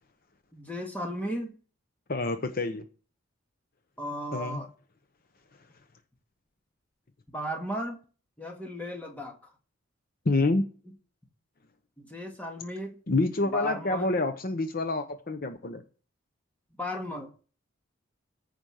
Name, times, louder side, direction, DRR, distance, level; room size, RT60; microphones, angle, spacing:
voice 1, 0.5-1.6 4.0-4.7 7.3-8.0 8.4-9.5 12.0-13.0 13.5-14.1 16.8-17.3, equal, 10° left, 1.7 m, -35 dB
voice 2, 2.1-2.8 4.3-4.6 10.2-10.6 13.1-15.8, left 2 dB, 45° left, 0.8 m, -27 dB
14.5 x 5.2 x 6.4 m
head